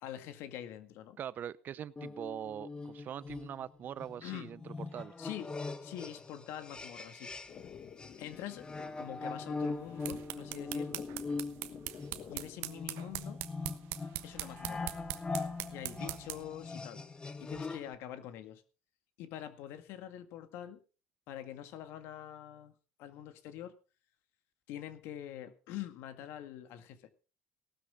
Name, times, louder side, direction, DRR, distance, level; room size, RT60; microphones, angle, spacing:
voice 1, 0.0-1.2 4.2-4.5 5.2-5.6 5.8-7.3 8.2-8.7 9.0-11.1 12.3-13.4 14.2-15.0 15.7-17.0 17.4-18.6 19.2-20.8 21.3-23.8 24.7-27.1, left 11 dB, 75° left, 9 dB, 1.9 m, -45 dB
voice 2, 1.2-5.1 15.9-16.2, right 9 dB, 50° right, 19 dB, 0.7 m, -43 dB
sound 1, 2.0-7.7 8.0-18.0, left 3 dB, 20° left, 1.4 m, -41 dB
sound 2, 7.5-12.6, left 8 dB, 50° left, 1.9 m, -52 dB
sound 3, 9.8-16.5, right 16 dB, 75° right, 1.1 m, -43 dB
17.5 x 13.0 x 3.7 m, 0.34 s
supercardioid pair, 95°, 4 cm